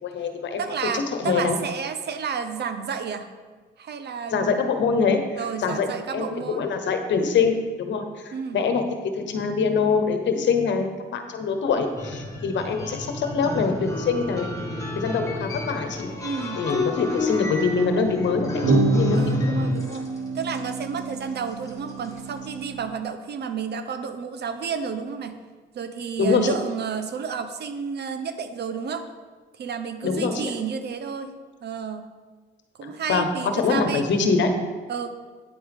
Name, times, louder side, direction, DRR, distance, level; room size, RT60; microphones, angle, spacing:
voice 1, 0.0-0.6 0.9-1.5 4.3-8.8 9.1-14.5 14.9-16.1 16.5-19.3 26.2-26.6 30.0-30.5 32.8-33.3 33.5-34.5, left 5 dB, 65° left, 6 dB, 1.2 m, -24 dB
voice 2, 0.6-3.3 3.8-4.6 5.4-6.6 8.3-8.6 16.2-16.6 19.1-20.1 20.3-25.4 25.7-29.1 29.6-31.3 31.6-32.1 32.8-34.0 34.9-35.2, right 6 dB, 55° right, 9 dB, 0.9 m, -31 dB
sound 1, 12.0-22.3, left 3 dB, 15° left, 1.9 m, -29 dB
sound 2, 15.5-15.6 15.9-16.1 16.9-17.3 18.6-22.9, right 6 dB, 80° right, 0.6 m, -28 dB
9.2 x 8.8 x 3.6 m, 1.4 s
cardioid pair, 90°, 20 cm